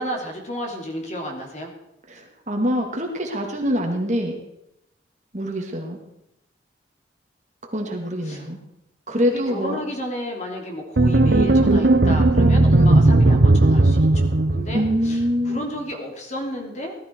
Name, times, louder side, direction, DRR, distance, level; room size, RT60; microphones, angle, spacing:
voice 1, 0.0-1.7 8.2-8.4 9.1-15.2 15.4-17.0, equal, 40° left, 1 dB, 3.0 m, -32 dB
voice 2, 2.1-4.4 5.3-6.0 7.7-8.6 9.1-9.8 14.7-15.6, equal, 40° right, 2 dB, 2.2 m, -24 dB
sound 1, 11.0-15.2, right 2 dB, 65° right, 0.8 m, -16 dB
18.0 x 13.0 x 4.6 m, 0.85 s
head